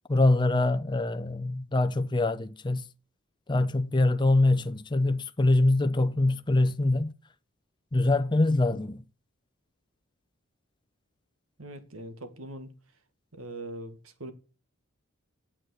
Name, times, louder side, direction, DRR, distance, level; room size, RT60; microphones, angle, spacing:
voice 1, 0.1-2.9 3.5-7.1 7.9-9.0, left 2 dB, 20° left, 0.5 m, -24 dB
voice 2, 11.6-12.7 13.3-14.3, right 1 dB, 75° right, 1.7 m, -41 dB
8.9 x 7.6 x 6.6 m
head